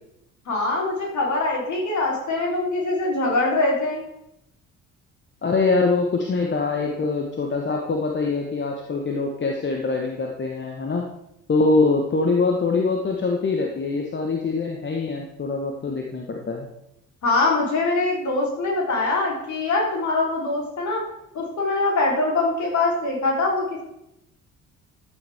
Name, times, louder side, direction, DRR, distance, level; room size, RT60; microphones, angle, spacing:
voice 1, 0.5-4.0 17.2-21.0 21.3-23.8, left 2 dB, 45° left, -2 dB, 3.9 m, -23 dB
voice 2, 5.4-11.0 11.5-16.7, left 3 dB, 25° left, 1 dB, 1.4 m, -23 dB
13.5 x 8.6 x 3.6 m, 0.84 s
figure-of-eight pair, 50°, 41 cm